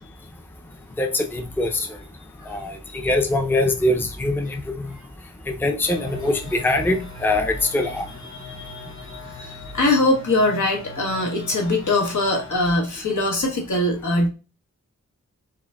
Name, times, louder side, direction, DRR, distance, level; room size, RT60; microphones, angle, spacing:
voice 1, 1.0-1.9 2.5-5.0 5.5-8.1, left 2 dB, 5° left, 4 dB, 0.4 m, -23 dB
sound 1, 5.8-12.5, left 3 dB, 45° left, 1.4 m, -41 dB
voice 2, 8.6-14.3, left 2 dB, 80° left, 0 dB, 1.0 m, -22 dB
4.8 x 2.5 x 2.2 m, 0.31 s
wide cardioid pair, 80°, 30 cm